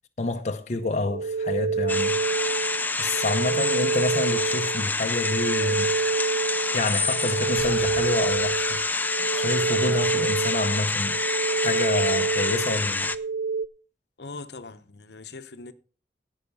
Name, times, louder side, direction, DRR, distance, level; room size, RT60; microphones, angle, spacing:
voice 1, 0.2-2.2 2.9-5.9 6.7-8.8 9.3-11.2 11.6-13.1, left 2 dB, 40° left, 0.7 m, -28 dB
sound 1, 0.8-13.7, right 5 dB, 90° right, 0.5 m, -28 dB
sound 2, 1.9-13.2, left 3 dB, 10° left, 0.4 m, -27 dB
sound 3, 7.6-10.2, right 1 dB, 35° right, 6.2 m, -46 dB
voice 2, 14.2-15.7, left 3 dB, 70° left, 0.9 m, -41 dB
17.0 x 5.8 x 5.4 m
head